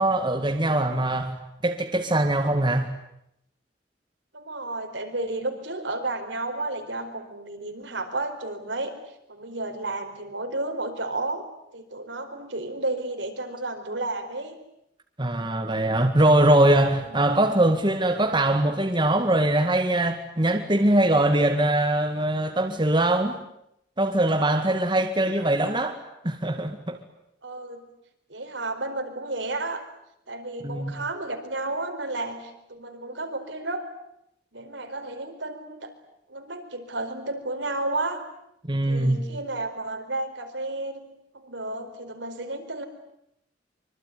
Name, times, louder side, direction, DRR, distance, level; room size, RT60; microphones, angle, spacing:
voice 1, 0.0-1.3 1.6-2.9 15.2-23.4 24.0-26.0 26.2-27.0 30.6-30.9 38.7-39.2, right 1 dB, 25° right, 5 dB, 2.0 m, -22 dB
voice 2, 4.3-8.9 9.3-11.4 11.7-14.6 17.0-17.4 27.4-27.9 28.3-29.8 30.3-33.8 34.5-35.9 36.3-38.2 38.9-41.0 41.3-42.8, right 2 dB, 70° right, 5 dB, 4.7 m, -32 dB
25.5 x 24.5 x 9.5 m, 0.79 s
head